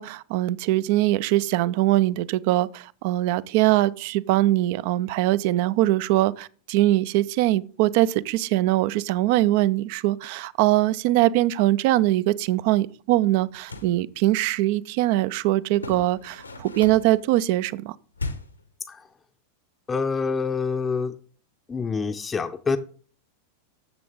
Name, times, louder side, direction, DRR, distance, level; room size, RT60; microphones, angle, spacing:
voice 1, 0.0-17.9, right 16 dB, 45° right, 0.5 m, -22 dB
sound 1, 13.5-14.0 15.7-17.2 18.2-18.7, left 3 dB, 85° left, 1.2 m, -36 dB
voice 2, 19.9-21.1 21.7-22.8, left 5 dB, 15° left, 0.6 m, -26 dB
12.5 x 7.6 x 3.8 m
figure-of-eight pair, 90°, 0 cm